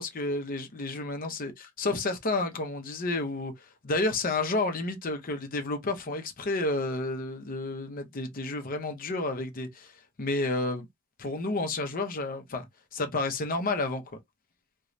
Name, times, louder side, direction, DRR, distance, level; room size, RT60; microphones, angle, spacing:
voice 1, 0.0-3.5 3.8-9.9 10.2-10.9 11.2-12.7 12.9-14.0, left 2 dB, 40° left, 0.6 m, -30 dB
3.1 x 2.2 x 2.5 m
head